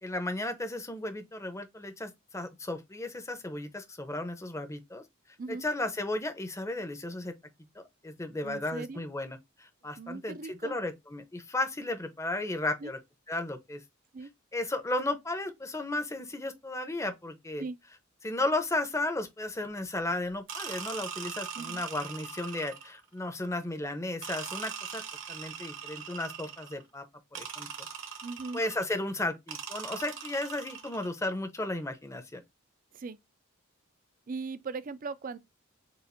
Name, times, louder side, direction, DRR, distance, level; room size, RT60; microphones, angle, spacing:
voice 1, 0.0-5.0 5.5-7.3 7.7-13.0 13.3-13.8 14.5-17.6 18.2-25.0 25.3-27.0 27.3-27.7 28.5-32.4, left 2 dB, 15° left, 0.7 m, -34 dB
voice 2, 8.4-9.0 10.0-10.8 12.8-12.9 14.1-14.3 17.6-17.8 21.6-21.8 28.2-28.6 32.9-33.2 34.3-35.4, right 4 dB, 40° right, 0.4 m, -39 dB
sound 1, 20.5-23.0 24.2-26.8 27.3-28.9 29.5-31.1, right 7 dB, 60° right, 1.0 m, -41 dB
6.8 x 2.5 x 2.5 m
head